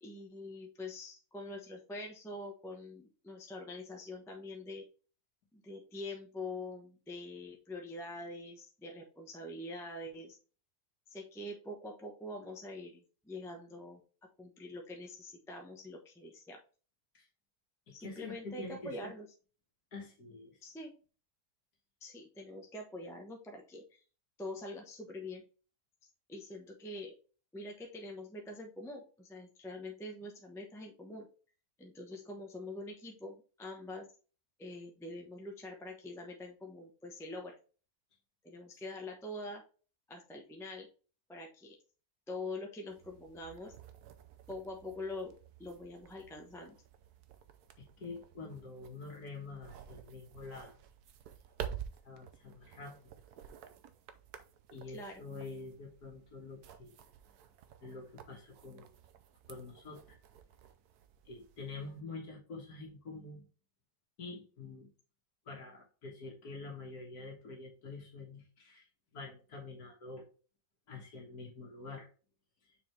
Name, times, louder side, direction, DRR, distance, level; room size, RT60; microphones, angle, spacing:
voice 1, 0.0-4.8 5.5-10.4 11.1-14.0 14.4-16.6 17.9-19.3 20.6-20.9 22.0-24.0 24.4-25.4 26.3-27.1 27.5-31.3 31.8-34.1 34.6-37.6 38.4-39.6 40.1-40.9 41.3-41.8 42.3-43.7 44.5-45.3 45.6-46.8 54.9-55.2, left 2 dB, ahead, 2 dB, 0.8 m, -45 dB
voice 2, 17.9-19.1 19.9-20.6 48.0-50.7 52.0-53.0 54.7-56.9 57.8-58.9 59.5-60.2 61.3-63.4 64.2-64.9 65.5-68.9 69.1-70.3 70.9-72.1, left 3 dB, 75° left, 0 dB, 1.9 m, -46 dB
sound 1, 42.9-62.0, right 9 dB, 90° right, 1.3 m, -51 dB
6.4 x 4.5 x 3.2 m, 0.37 s
omnidirectional pair, 1.6 m